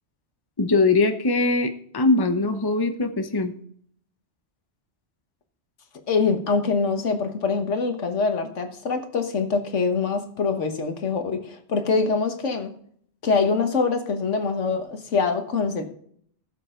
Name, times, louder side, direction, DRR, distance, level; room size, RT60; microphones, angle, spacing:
voice 1, 0.6-3.5, left 3 dB, 20° left, 7 dB, 0.9 m, -21 dB
voice 2, 6.1-12.7 13.2-15.9, left 4 dB, 80° left, 6 dB, 1.7 m, -24 dB
16.5 x 7.6 x 3.8 m, 0.62 s
omnidirectional pair, 1.2 m